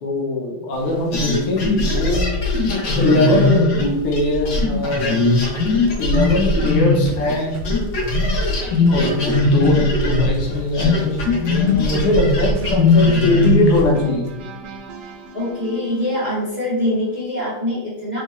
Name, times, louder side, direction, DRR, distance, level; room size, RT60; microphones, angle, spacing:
voice 1, 0.0-2.3 3.0-3.7 4.0-5.2 6.0-7.6 8.9-11.3 11.5-14.3, left 2 dB, 85° left, -2 dB, 1.9 m, -20 dB
sound 1, 1.1-7.4 7.7-13.9, left 2 dB, 60° left, 1.4 m, -19 dB
sound 2, 5.4-9.7 10.0-17.2, left 1 dB, 75° right, 0.9 m, -36 dB
voice 2, 15.3-18.2, left 1 dB, 25° right, -9 dB, 1.0 m, -23 dB
4.4 x 4.1 x 2.4 m, 0.98 s
omnidirectional pair, 2.4 m